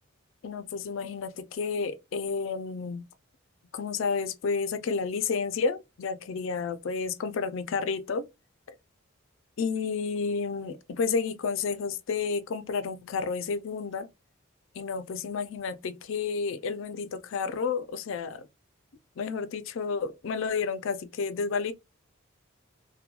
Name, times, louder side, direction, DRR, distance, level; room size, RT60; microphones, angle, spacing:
voice 1, 0.4-3.1 3.7-8.2 9.6-14.1 14.8-18.5 19.2-21.7, left 5 dB, 65° left, 0.4 m, -31 dB
2.9 x 2.1 x 2.3 m
head